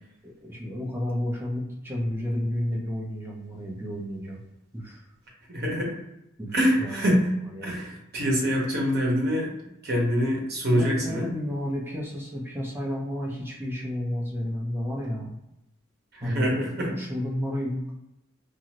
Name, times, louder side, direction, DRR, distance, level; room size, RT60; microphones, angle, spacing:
voice 1, 0.2-4.4 4.7-5.1 6.4-7.2 7.5-7.7 10.7-15.3 16.2-17.9, left 1 dB, 10° right, -3 dB, 0.7 m, -31 dB
voice 2, 5.5-6.0 6.5-7.3 7.6-9.5 9.8-11.3 16.1-17.0, equal, 50° right, -2 dB, 1.0 m, -25 dB
2.7 x 2.5 x 3.0 m, 0.88 s
head